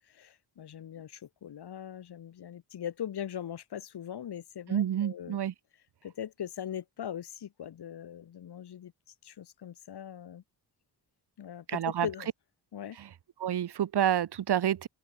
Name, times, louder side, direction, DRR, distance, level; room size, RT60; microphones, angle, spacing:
voice 1, 0.0-5.4 6.0-8.9 9.2-10.4 11.4-12.3 12.7-13.0, left 9 dB, 80° left, 5.9 m, -40 dB
voice 2, 4.7-5.5 11.7-12.1 13.0-13.1 13.4-14.9, right 10 dB, 85° right, 3.2 m, -28 dB
open air
wide cardioid pair, 140°, 39 cm